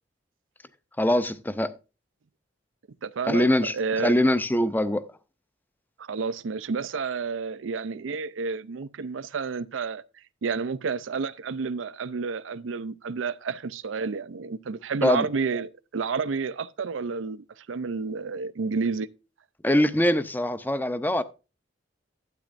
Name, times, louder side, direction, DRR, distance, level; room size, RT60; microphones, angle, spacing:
voice 1, 1.0-1.7 3.3-5.1 15.0-15.2 19.6-21.2, left 1 dB, 10° left, 0.6 m, -23 dB
voice 2, 3.0-4.2 6.0-10.0 10.4-19.1, right 5 dB, 80° right, 0.5 m, -30 dB
12.0 x 8.9 x 2.5 m
head